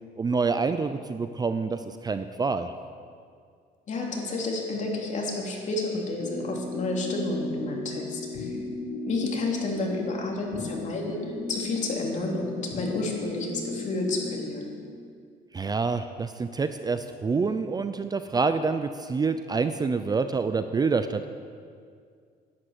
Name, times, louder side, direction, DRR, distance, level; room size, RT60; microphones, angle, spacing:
voice 1, 0.2-2.7 15.5-21.3, right 4 dB, 25° right, 10 dB, 0.6 m, -27 dB
voice 2, 3.9-8.5 9.1-11.2 11.5-14.7, left 2 dB, 45° left, -1 dB, 3.1 m, -30 dB
sound 1, 6.2-14.9, left 2 dB, 80° left, 1.6 m, -36 dB
11.0 x 10.0 x 8.2 m, 2.2 s
cardioid pair, 110°, 17 cm